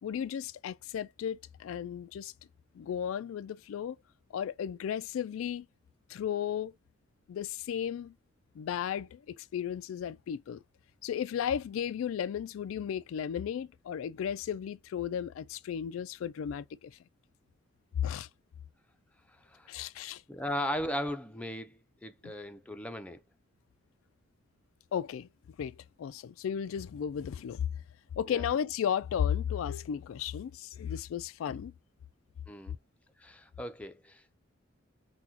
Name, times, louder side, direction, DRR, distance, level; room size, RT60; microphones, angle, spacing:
voice 1, 0.0-2.3 2.7-4.0 4.3-5.7 6.1-6.7 7.3-8.1 8.6-10.6 11.0-17.0 18.0-18.3 19.7-20.2 22.2-22.3 24.9-25.3 25.6-27.7 28.2-31.7, left 8 dB, 90° left, 0.3 m, -34 dB
voice 2, 19.3-19.7 20.3-23.2 28.3-28.5 31.5-31.7 32.5-32.8 33.2-34.4, equal, 5° left, 0.5 m, -37 dB
6.0 x 2.3 x 2.7 m
head